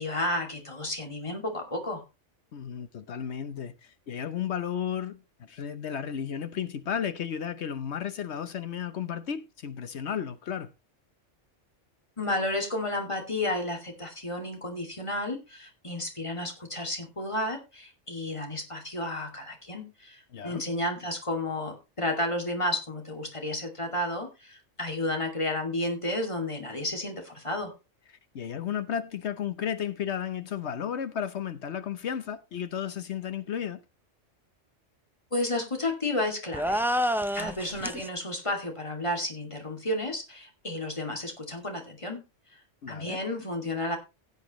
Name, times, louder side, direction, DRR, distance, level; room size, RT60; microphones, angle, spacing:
voice 1, 0.0-2.0 12.2-27.7 35.3-36.8 37.3-42.2 42.9-44.0, left 1 dB, 25° left, 2.5 m, -32 dB
voice 2, 2.5-10.7 20.3-20.6 28.3-33.8 42.8-43.2, left 8 dB, 65° left, 1.1 m, -33 dB
sound 1, 36.5-38.1, equal, 5° right, 0.3 m, -28 dB
16.5 x 8.2 x 3.1 m
omnidirectional pair, 1.2 m